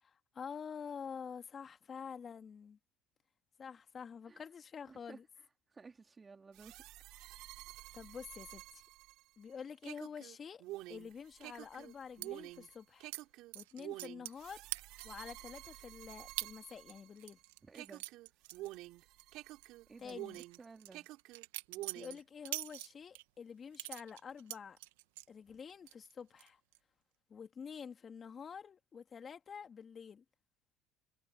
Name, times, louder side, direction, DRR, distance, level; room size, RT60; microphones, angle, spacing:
voice 1, 0.0-2.8 3.6-5.3 7.9-8.8 9.4-10.6 10.9-13.1 13.5-14.6 15.0-17.4 20.0-20.4 21.9-24.8 25.3-26.6 27.3-30.2, left 6 dB, 40° left, 2.2 m, -48 dB
voice 2, 4.9-5.2 5.7-6.8 17.6-18.0 19.9-21.1, right 4 dB, 25° right, 3.0 m, -55 dB
sound 1, 6.5-17.4 17.7-20.6 20.9-22.2, right 17 dB, 70° right, 4.0 m, -49 dB
sound 2, 12.2-12.3 13.1-13.2 13.5-14.4 14.7-15.2 15.7-15.8 16.4-16.5 16.9-19.2 19.5-19.7 20.1-23.2 23.7-25.3 25.7-26.1 26.4-26.8, right 19 dB, 85° right, 1.6 m, -44 dB
hypercardioid pair, 70°, 0 cm